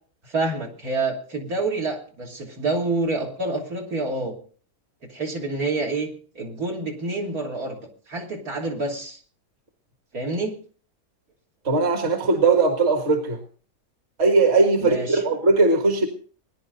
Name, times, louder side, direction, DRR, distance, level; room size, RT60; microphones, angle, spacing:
voice 1, 0.3-4.4 5.1-7.8 8.1-9.2 10.1-10.5 14.8-15.2, right 2 dB, 75° right, -1 dB, 3.5 m, -27 dB
voice 2, 11.7-13.4 14.2-16.1, right 3 dB, 45° right, 5 dB, 1.9 m, -19 dB
20.5 x 10.5 x 3.9 m, 0.42 s
omnidirectional pair, 1.6 m